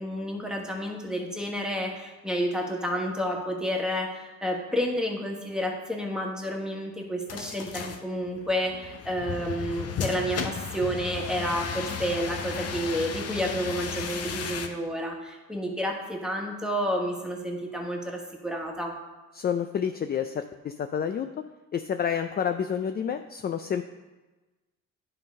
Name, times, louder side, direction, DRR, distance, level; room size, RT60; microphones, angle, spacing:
voice 1, 0.0-18.9, equal, ahead, 0 dB, 1.5 m, -30 dB
sound 1, 7.3-14.7, left 6 dB, 55° left, 0.8 m, -35 dB
voice 2, 19.3-21.3 21.7-23.8, left 8 dB, 35° left, 8 dB, 0.4 m, -29 dB
10.0 x 3.9 x 5.3 m, 1.2 s
cardioid pair, 90°, 30 cm